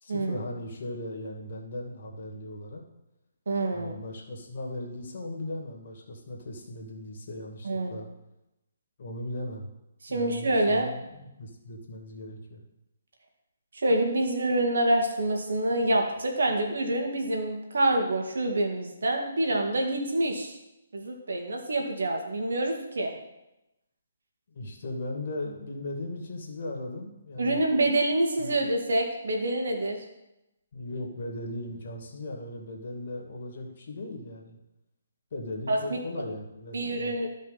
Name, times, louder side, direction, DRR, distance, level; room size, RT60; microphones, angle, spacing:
voice 1, 0.0-2.8 3.7-8.1 9.0-9.7 10.1-12.6 24.5-27.6 28.4-28.7 30.7-34.6 35.3-37.1, left 1 dB, 55° left, 0 dB, 2.3 m, -38 dB
voice 2, 3.5-3.9 7.6-8.0 10.0-10.9 13.8-20.6 20.9-23.1 27.4-30.0 35.7-35.8 36.7-37.3, right 1 dB, 75° right, 2 dB, 2.1 m, -26 dB
13.0 x 5.2 x 4.2 m, 0.92 s
hypercardioid pair, 150°, 0 cm